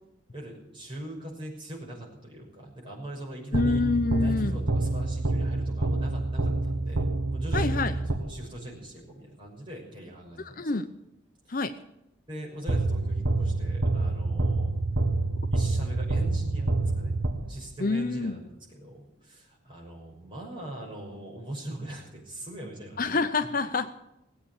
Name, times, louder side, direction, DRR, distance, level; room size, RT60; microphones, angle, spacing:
voice 1, 0.3-3.8 4.2-10.7 11.4-11.6 12.3-14.7 15.5-23.2, right 1 dB, 25° right, -3 dB, 6.1 m, -41 dB
voice 2, 3.5-4.6 7.5-7.9 10.6-10.9 11.5-11.7 17.8-18.3 23.0-23.9, left 3 dB, 45° left, 9 dB, 0.7 m, -26 dB
sound 1, 3.5-8.6 12.7-17.9, right 2 dB, 75° right, 1.4 m, -27 dB
19.5 x 8.5 x 8.8 m, 0.88 s
head